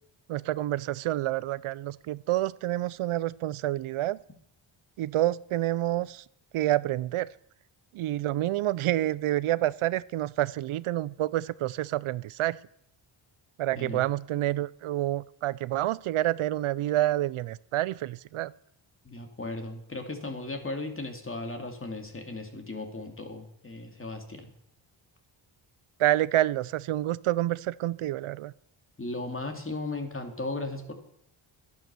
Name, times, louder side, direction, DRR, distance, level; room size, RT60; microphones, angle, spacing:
voice 1, 0.3-4.2 5.0-6.2 6.5-7.3 7.9-12.6 13.6-18.5 26.0-28.5, right 14 dB, 80° right, 19 dB, 0.6 m, -28 dB
voice 2, 19.0-24.5 29.0-30.9, left 2 dB, 25° left, 5 dB, 2.5 m, -36 dB
12.0 x 10.5 x 6.8 m, 0.71 s
cardioid pair, 80°, 49 cm